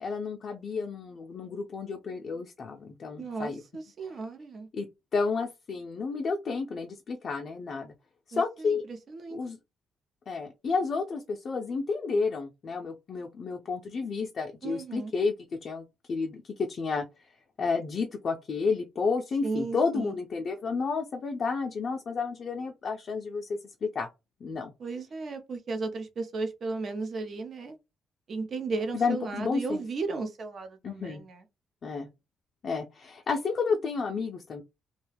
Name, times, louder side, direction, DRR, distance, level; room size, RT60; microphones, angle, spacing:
voice 1, 0.0-3.6 4.7-7.9 8.3-8.8 9.3-9.6 10.3-15.3 15.6-17.3 17.6-24.1 24.4-24.7 28.9-29.8 30.8-31.2 31.8-32.1 32.6-34.6, left 4 dB, 50° left, 0.4 m, -31 dB
voice 2, 3.2-4.7 8.3-8.8 9.1-9.4 14.6-15.1 19.4-20.2 24.8-27.8 28.3-31.4, right 3 dB, 50° right, 0.6 m, -35 dB
2.4 x 2.2 x 3.2 m
cardioid pair, 90°, 0 cm